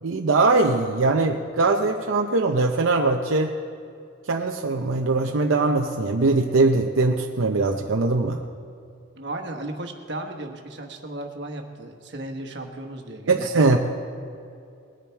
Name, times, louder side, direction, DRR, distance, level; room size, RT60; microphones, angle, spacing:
voice 1, 0.0-3.6 4.3-8.4 13.3-13.8, right 3 dB, 80° right, 2 dB, 0.7 m, -21 dB
voice 2, 9.2-13.8, right 1 dB, 60° right, 4 dB, 1.3 m, -35 dB
20.5 x 10.5 x 4.5 m, 2.5 s
head